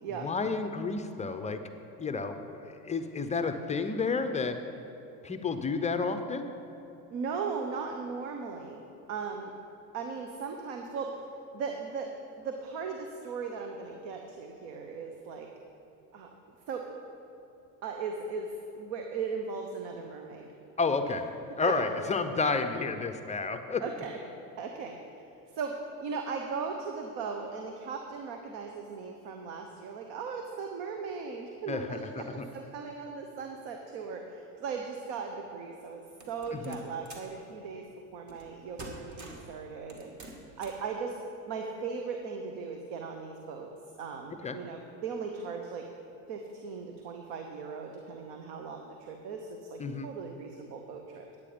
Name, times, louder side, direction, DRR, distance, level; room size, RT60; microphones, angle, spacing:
voice 1, 0.2-1.6 2.0-4.6 5.2-6.5 20.8-21.2 21.5-23.8 31.7-32.4 36.6-36.8 44.4-44.6 49.8-50.1, left 4 dB, 15° left, 8 dB, 0.5 m, -31 dB
voice 2, 7.1-8.8 9.1-9.5 9.9-11.1 11.5-12.1 12.4-15.5 16.1-16.3 16.7-16.8 17.8-18.5 18.7-20.5 21.6-21.7 23.8-24.2 24.6-25.0 25.5-25.7 26.0-32.2 32.5-37.9 38.1-40.1 40.6-41.2 41.5-43.7 44.0-45.9 46.3-51.4, right 5 dB, 55° right, 3 dB, 1.1 m, -38 dB
sound 1, 36.2-37.4 38.3-38.5 38.8-39.5 39.9-40.9, right 2 dB, 35° right, 1.8 m, -46 dB
10.0 x 8.5 x 5.1 m, 2.9 s
hypercardioid pair, 95°, 47 cm